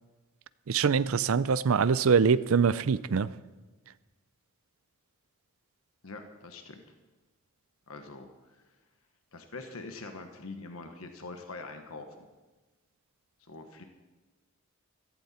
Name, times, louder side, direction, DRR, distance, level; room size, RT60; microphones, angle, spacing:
voice 1, 0.7-3.3, right 6 dB, 70° right, 17 dB, 0.5 m, -24 dB
voice 2, 6.0-6.8 7.9-8.6 9.3-12.2 13.4-13.8, left 3 dB, 75° left, 6 dB, 1.3 m, -44 dB
16.0 x 15.0 x 4.3 m, 1.2 s
head